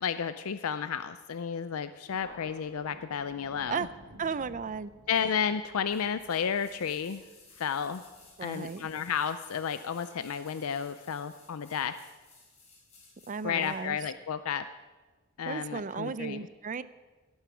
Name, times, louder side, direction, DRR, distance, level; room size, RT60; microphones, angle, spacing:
voice 1, 0.0-3.9 5.1-7.2 7.6-8.0 8.4-11.9 13.4-14.6 15.4-16.4, left 7 dB, 80° left, 11 dB, 0.5 m, -32 dB
Thunder, 2.1-9.1, equal, 75° right, 4.7 m, -55 dB
voice 2, 4.2-4.9 8.4-8.8 13.3-14.0 15.5-16.8, right 5 dB, 40° right, 15 dB, 0.5 m, -34 dB
sound 1, 5.9-13.8 14.1-14.2, left 3 dB, 30° left, 4.8 m, -58 dB
17.0 x 8.7 x 6.2 m, 1.2 s
head